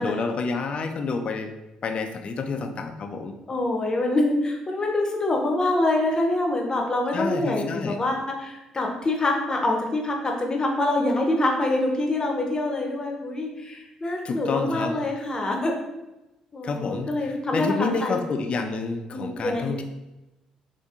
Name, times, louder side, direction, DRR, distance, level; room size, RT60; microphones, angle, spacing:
voice 1, 0.0-1.5 1.8-3.3 7.1-8.0 14.2-15.0 16.6-19.8, left 4 dB, 45° left, 6 dB, 0.4 m, -29 dB
voice 2, 3.5-15.8 16.5-18.2 18.6-18.7 19.1-19.8, left 2 dB, 30° left, 1 dB, 0.8 m, -25 dB
4.2 x 2.6 x 2.5 m, 1.0 s
hypercardioid pair, 50°, 3 cm